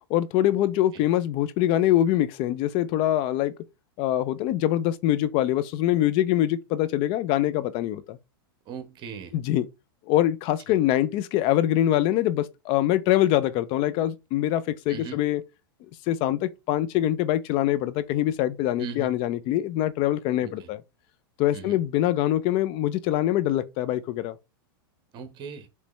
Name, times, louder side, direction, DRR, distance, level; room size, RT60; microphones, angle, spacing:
voice 1, 0.1-3.5 4.0-8.2 9.3-9.6 10.1-15.4 16.1-20.8 21.4-24.4, left 13 dB, 45° left, 0.4 m, -24 dB
voice 2, 8.6-9.4 10.7-10.8 14.9-15.2 18.8-19.1 20.4-20.7 21.5-21.8 25.1-25.7, right 6 dB, 40° right, 1.1 m, -39 dB
5.2 x 3.2 x 3.2 m
hypercardioid pair, 110°, 12 cm